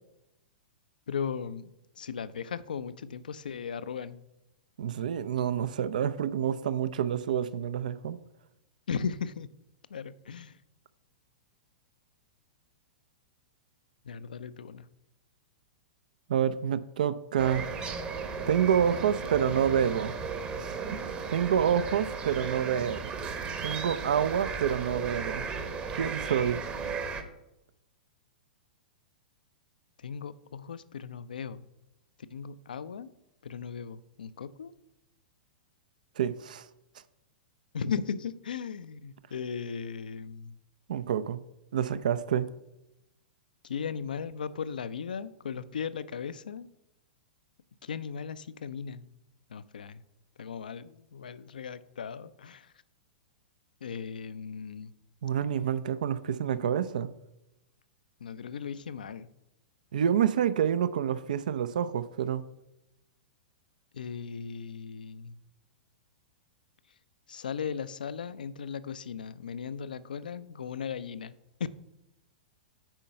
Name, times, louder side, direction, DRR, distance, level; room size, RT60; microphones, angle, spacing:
voice 1, 1.1-4.2 8.9-9.5 9.9-10.6 14.0-14.9 30.0-31.7 32.3-33.1 33.4-34.7 37.7-40.6 43.6-46.7 47.8-49.1 49.5-50.0 50.4-52.7 53.8-54.9 58.2-59.3 63.9-65.4 67.3-71.7, left 6 dB, 65° left, 0.4 m, -37 dB
voice 2, 4.8-8.2 16.3-17.6 18.5-20.1 20.6-21.0 21.3-23.1 23.6-25.5 25.9-26.6 36.2-36.7 40.9-41.4 41.7-42.5 55.2-57.1 59.9-62.4, right 9 dB, 60° right, 0.4 m, -28 dB
sound 1, 17.4-27.2, right 5 dB, 25° right, 0.9 m, -35 dB
8.9 x 4.5 x 5.5 m
figure-of-eight pair, 100°, 5 cm